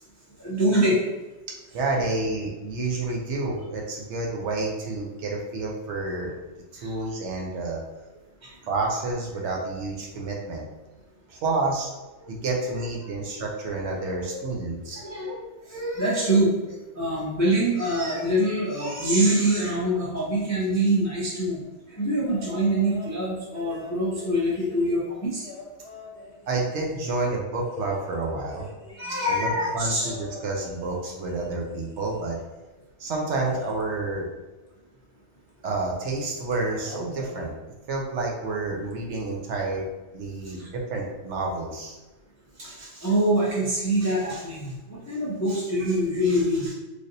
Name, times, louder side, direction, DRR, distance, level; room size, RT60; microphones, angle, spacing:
voice 1, 0.4-1.0 6.8-6.9 8.4-8.5 14.9-15.4 15.7-21.6 22.0-25.5 28.9-30.1 40.6-40.7 42.6-46.7, right 1 dB, 25° left, -6 dB, 0.3 m, -24 dB
voice 2, 1.7-6.4 6.7-7.8 8.6-10.7 11.3-11.9 12.3-15.0 26.5-28.7 29.3-32.4 33.0-34.3 35.6-37.5 37.9-39.8 40.1-42.0, right 3 dB, 65° right, -1 dB, 0.9 m, -29 dB
sound 1, 22.3-23.2 23.5-27.1 27.6-32.4 33.3-33.8 35.6-35.8 36.1-36.5 36.8-37.5 38.9-39.0, left 2 dB, 60° left, 0.9 m, -44 dB
3.2 x 2.5 x 2.6 m, 1.1 s
omnidirectional pair, 1.4 m